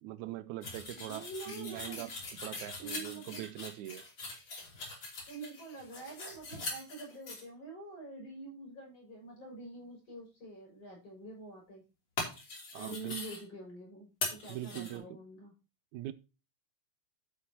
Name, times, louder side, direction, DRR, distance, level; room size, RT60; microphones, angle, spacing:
voice 1, 0.0-2.1 2.4-4.0 12.7-13.2 14.5-15.2 15.9-16.1, right 14 dB, 85° right, 2.0 m, -42 dB
sound 1, 0.6-7.4 12.2-13.4 14.2-15.0, left 2 dB, 40° left, 3.7 m, -42 dB
voice 2, 0.9-2.1 2.8-3.5 5.3-11.8 12.8-15.5, right 3 dB, 55° left, 7.5 m, -46 dB
11.0 x 8.6 x 2.8 m
omnidirectional pair, 3.3 m